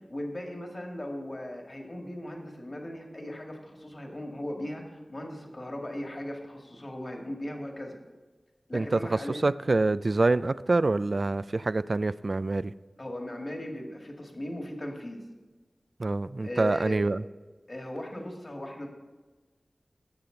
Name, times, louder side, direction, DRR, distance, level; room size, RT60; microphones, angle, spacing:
voice 1, 0.0-8.0 8.7-9.5 13.0-15.2 16.4-17.0 17.7-18.9, left 1 dB, 45° left, 2 dB, 2.0 m, -38 dB
voice 2, 8.7-12.7 16.0-17.2, right 2 dB, 55° right, 15 dB, 0.3 m, -26 dB
17.5 x 6.8 x 3.9 m, 1.2 s
cardioid pair, 45°, 0 cm